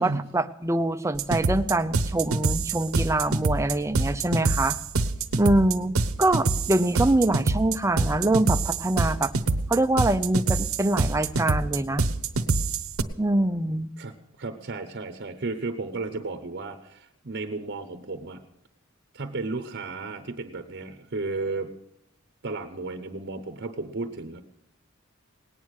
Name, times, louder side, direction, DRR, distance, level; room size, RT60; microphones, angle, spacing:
voice 1, 0.0-4.8 5.3-5.9 6.2-9.3 9.7-12.1 13.2-13.9, right 1 dB, 15° right, 10 dB, 0.5 m, -24 dB
sound 1, 1.2-13.0, right 3 dB, 85° right, 0.9 m, -25 dB
voice 2, 14.0-18.4 19.1-21.7 22.4-24.4, right 3 dB, 50° right, 8 dB, 0.9 m, -33 dB
18.5 x 9.3 x 6.4 m, 0.77 s
head